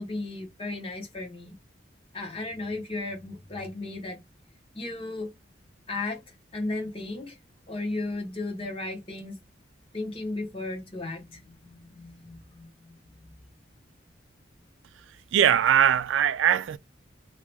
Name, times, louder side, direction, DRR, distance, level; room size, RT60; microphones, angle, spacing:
voice 1, 0.0-1.5 2.1-4.2 4.7-5.3 5.9-6.2 6.5-7.4 7.7-9.4 9.9-13.0 13.2-13.3, left 2 dB, 30° left, 1.0 m, -35 dB
voice 2, 15.3-16.8, right 9 dB, 85° right, 0.3 m, -21 dB
2.8 x 2.3 x 3.2 m
head